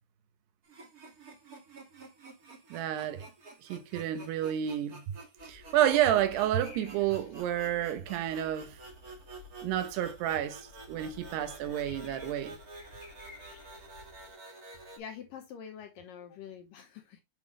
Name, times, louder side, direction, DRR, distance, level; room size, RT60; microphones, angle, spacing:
sound 1, 0.6-15.0, right 2 dB, 45° right, 1.1 m, -50 dB
voice 1, 2.7-3.2 3.6-5.0 5.4-8.8 9.6-12.6, right 11 dB, 75° right, 2.9 m, -30 dB
sound 2, 5.4-14.3, left 2 dB, 60° left, 1.3 m, -53 dB
voice 2, 15.0-17.2, left 8 dB, 75° left, 2.2 m, -45 dB
8.2 x 5.4 x 3.2 m
omnidirectional pair, 4.9 m